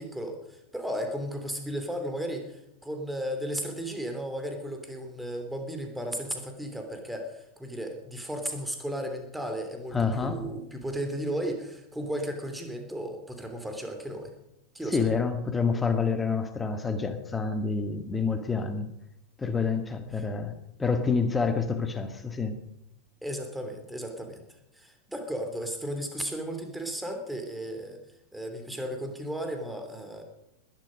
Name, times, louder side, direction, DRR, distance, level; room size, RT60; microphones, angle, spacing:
voice 1, 0.0-14.3 14.7-15.1 20.1-20.3 23.2-24.4 24.7-28.0 28.3-30.2, equal, 5° right, 5 dB, 3.1 m, -35 dB
voice 2, 9.9-10.4 14.9-18.9 19.4-20.5 20.8-22.5, left 5 dB, 15° left, 8 dB, 1.9 m, -28 dB
20.5 x 11.5 x 5.2 m, 0.86 s
figure-of-eight pair, 85°, 0 cm